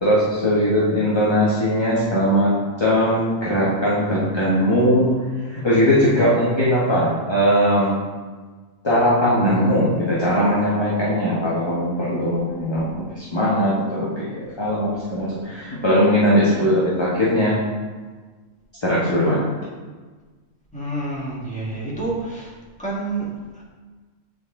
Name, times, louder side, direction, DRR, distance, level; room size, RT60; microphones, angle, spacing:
voice 1, 0.0-5.1 5.5-8.0 8.8-17.6 18.8-19.4, equal, 20° left, -8 dB, 1.1 m, -20 dB
voice 2, 20.7-22.5 22.8-23.6, right 2 dB, 5° left, -6 dB, 1.6 m, -28 dB
7.9 x 4.6 x 3.6 m, 1.4 s
omnidirectional pair, 1.4 m